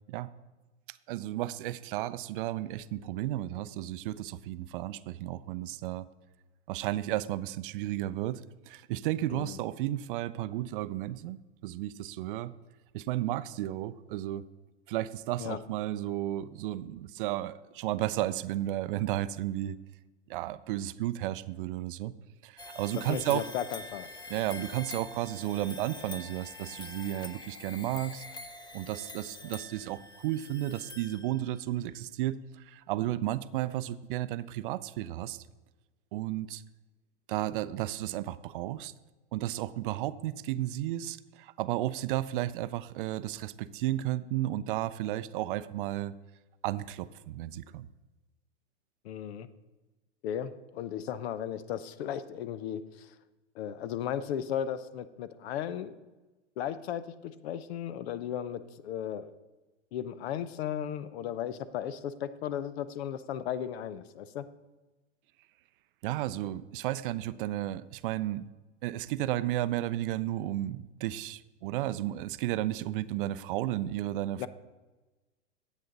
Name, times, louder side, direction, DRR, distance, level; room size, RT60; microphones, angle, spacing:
voice 1, 0.9-6.1 6.7-12.5 12.9-14.4 14.9-19.8 20.3-22.1 22.4-23.5 24.3-28.3 28.7-35.4 36.1-36.6 37.3-38.9 39.3-46.1 46.6-47.9 66.0-68.5 68.8-74.5, right 14 dB, 45° right, 15 dB, 0.4 m, -33 dB
sound 1, 22.6-31.6, left 3 dB, 10° left, 0.5 m, -45 dB
voice 2, 23.1-24.1 49.0-49.5 50.2-53.1 53.5-56.0 56.6-59.3 59.9-64.5 74.4-74.5, left 9 dB, 60° left, 15 dB, 0.7 m, -35 dB
10.5 x 8.3 x 3.9 m, 1.2 s
hypercardioid pair, 125°, 36 cm